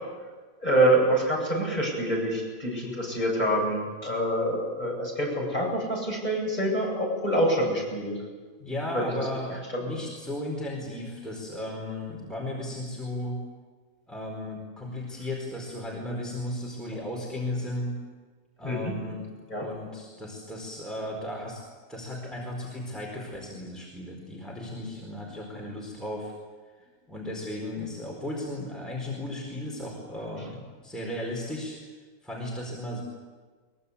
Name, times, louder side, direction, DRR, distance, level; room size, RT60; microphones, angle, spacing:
voice 1, 0.6-8.2 8.9-9.1 18.6-18.9 19.5-19.7, right 1 dB, 25° left, -2 dB, 8.3 m, -26 dB
voice 2, 8.6-13.4 14.1-17.9 18.6-21.6 21.9-26.3 27.1-31.8 32.2-33.0, left 1 dB, ahead, -2 dB, 4.4 m, -35 dB
22.5 x 22.5 x 8.5 m, 1.4 s
omnidirectional pair, 1.6 m